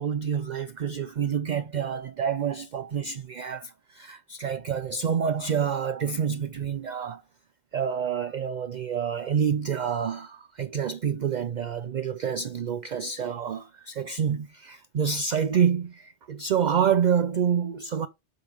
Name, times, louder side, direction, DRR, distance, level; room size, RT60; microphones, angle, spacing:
voice 1, 0.0-7.2 7.7-18.1, right 7 dB, 55° right, 0.6 m, -27 dB
7.7 x 5.3 x 3.5 m
omnidirectional pair, 1.1 m